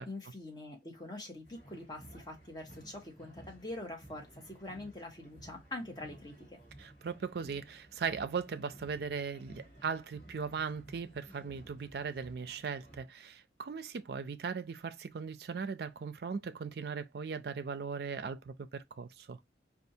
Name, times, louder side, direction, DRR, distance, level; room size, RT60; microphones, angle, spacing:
voice 1, 0.0-6.6, left 2 dB, 25° left, 0.9 m, -44 dB
sound 1, 1.4-13.0, right 1 dB, 45° left, 1.4 m, -55 dB
voice 2, 6.8-19.4, right 5 dB, 60° right, 0.4 m, -38 dB
4.3 x 2.4 x 2.7 m
head